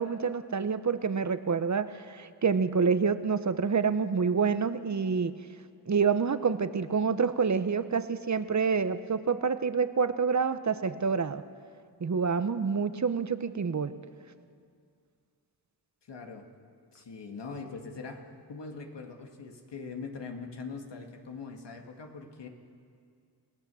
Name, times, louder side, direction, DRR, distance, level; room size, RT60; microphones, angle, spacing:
voice 1, 0.0-5.3 5.9-11.4 12.0-13.9, right 5 dB, 40° right, 11 dB, 1.0 m, -27 dB
voice 2, 16.0-16.5 16.9-18.2 18.5-22.5, left 4 dB, 80° left, 3 dB, 2.3 m, -42 dB
29.5 x 17.0 x 7.1 m, 2.3 s
wide cardioid pair, 80°, 42 cm